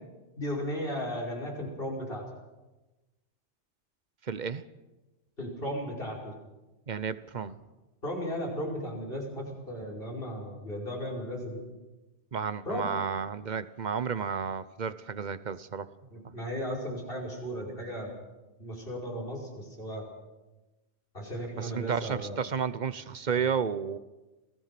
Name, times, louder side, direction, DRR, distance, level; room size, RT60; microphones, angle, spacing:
voice 1, 0.4-2.2 5.4-6.3 8.0-11.6 12.7-12.9 16.1-18.1 18.6-20.0 21.1-22.4, equal, 50° left, -1 dB, 5.6 m, -35 dB
voice 2, 4.2-4.6 6.9-7.6 12.3-15.9 21.6-24.0, right 6 dB, 45° right, 15 dB, 0.9 m, -32 dB
28.0 x 18.5 x 5.9 m, 1.1 s
omnidirectional pair, 1.2 m